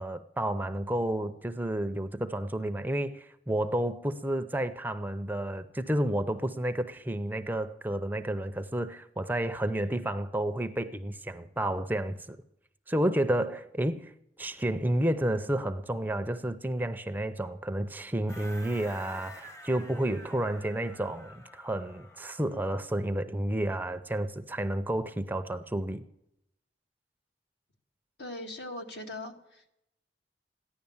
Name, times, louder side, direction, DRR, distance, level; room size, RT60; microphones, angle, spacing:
voice 1, 0.0-12.4 12.9-14.1 14.4-26.0, right 1 dB, 10° right, 0.5 m, -31 dB
sound 1, 18.3-22.7, equal, 20° left, 1.0 m, -49 dB
voice 2, 28.2-29.7, left 1 dB, 65° left, 1.9 m, -40 dB
14.5 x 11.0 x 7.1 m
head